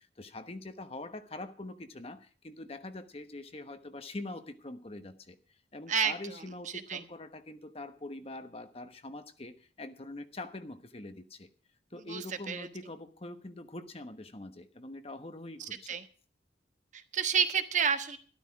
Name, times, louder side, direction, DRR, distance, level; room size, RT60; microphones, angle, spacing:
voice 1, 0.0-5.4 5.7-11.5 11.9-15.8, left 2 dB, 35° left, 8 dB, 1.1 m, -44 dB
voice 2, 12.1-12.7 15.6-16.1 16.9-18.2, right 7 dB, 45° right, 8 dB, 1.2 m, -30 dB
13.0 x 12.5 x 4.8 m, 0.42 s
head